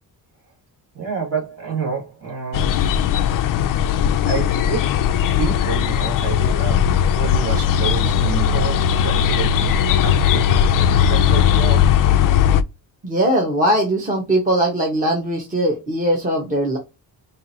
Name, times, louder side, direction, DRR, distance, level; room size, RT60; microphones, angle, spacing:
voice 1, 0.9-2.8 3.8-3.9 4.3-5.0 5.4-10.5 11.1-11.9, right 6 dB, 40° right, 2.2 m, -28 dB
sound 1, 2.5-12.6, left 9 dB, 60° left, 0.5 m, -18 dB
voice 2, 13.0-16.8, right 1 dB, 20° right, 1.1 m, -20 dB
4.9 x 2.6 x 2.8 m
cardioid pair, 160°, 38 cm